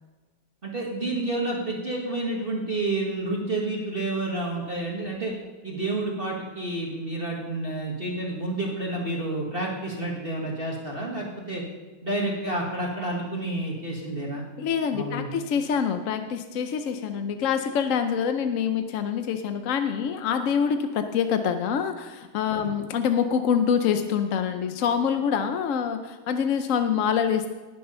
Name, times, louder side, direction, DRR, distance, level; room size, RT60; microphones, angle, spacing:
voice 1, 0.6-5.3 5.6-11.6 12.0-14.4 14.9-15.3 22.6-22.7, right 2 dB, 35° right, -2 dB, 1.7 m, -29 dB
voice 2, 14.6-27.5, left 7 dB, 60° left, 8 dB, 0.8 m, -25 dB
18.5 x 6.8 x 5.5 m, 1.3 s
omnidirectional pair, 1.9 m